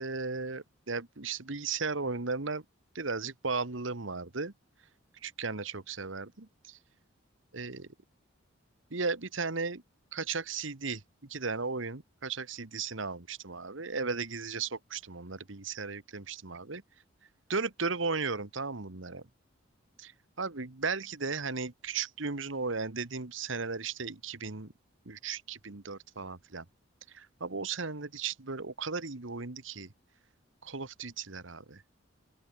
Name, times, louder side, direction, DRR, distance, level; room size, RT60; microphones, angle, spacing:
voice 1, 0.0-2.6 2.9-4.5 5.2-6.8 7.5-7.9 8.9-9.8 10.1-16.8 17.5-19.2 20.0-20.1 20.4-24.7 25.0-26.6 27.1-29.9 30.6-31.8, right 4 dB, 75° right, 1.6 m, -36 dB
open air
head